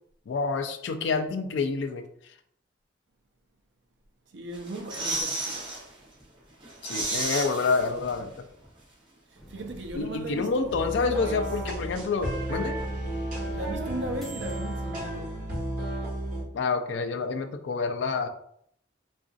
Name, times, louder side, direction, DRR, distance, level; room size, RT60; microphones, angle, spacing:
voice 1, 0.3-2.0 6.8-8.3 9.9-12.8 16.5-18.3, left 4 dB, 70° left, 0.3 m, -28 dB
voice 2, 4.3-5.7 9.5-10.7 11.0-11.4 13.5-15.4, right 2 dB, 75° right, 0.5 m, -37 dB
sound 1, 4.5-5.8 6.2-6.3 6.6-8.4 8.6-8.7, right 2 dB, 25° right, 0.8 m, -32 dB
sound 2, 9.4-15.8, equal, ahead, 0.5 m, -46 dB
sound 3, 10.7-16.4, right 1 dB, 45° right, 1.2 m, -33 dB
3.7 x 2.4 x 2.5 m
head